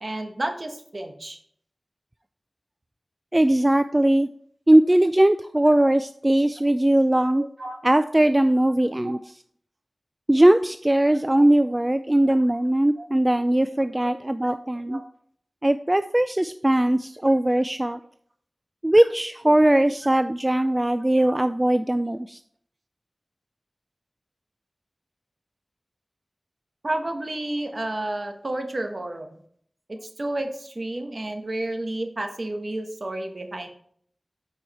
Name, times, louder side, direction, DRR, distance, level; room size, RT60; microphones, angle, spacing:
voice 1, 0.0-1.4 7.3-7.8 9.0-9.2 13.0-13.1 14.5-14.6 14.9-15.0 21.2-21.4 26.8-29.4 29.9-33.7, right 1 dB, 55° right, 5 dB, 1.2 m, -31 dB
voice 2, 3.3-4.3 4.7-7.4 7.8-9.2 10.3-15.0 15.6-18.0 18.8-22.4, right 1 dB, 25° right, 11 dB, 0.3 m, -20 dB
8.9 x 4.8 x 4.2 m, 0.62 s
wide cardioid pair, 45°, 0 cm